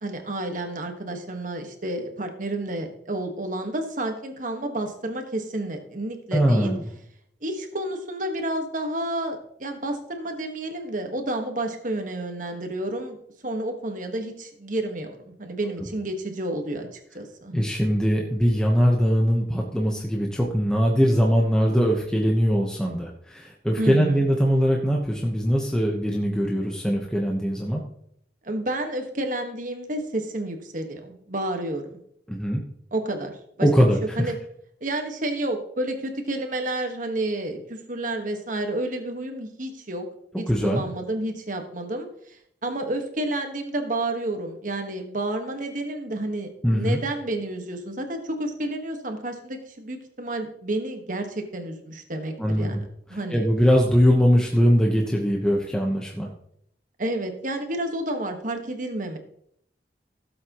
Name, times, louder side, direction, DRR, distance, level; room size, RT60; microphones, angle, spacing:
voice 1, 0.0-6.7 7.4-13.2 13.4-17.5 23.8-24.2 28.4-32.0 32.9-33.7 34.2-34.3 34.8-40.1 40.4-42.4 42.6-52.8 53.1-53.5 57.0-59.2, right 1 dB, 50° right, 5 dB, 1.5 m, -30 dB
voice 2, 6.3-6.8 17.5-27.8 32.3-32.6 33.6-34.3 40.5-40.8 46.6-47.0 52.4-52.8 53.3-56.3, equal, 5° left, -1 dB, 1.1 m, -21 dB
16.5 x 7.8 x 3.0 m, 0.70 s
head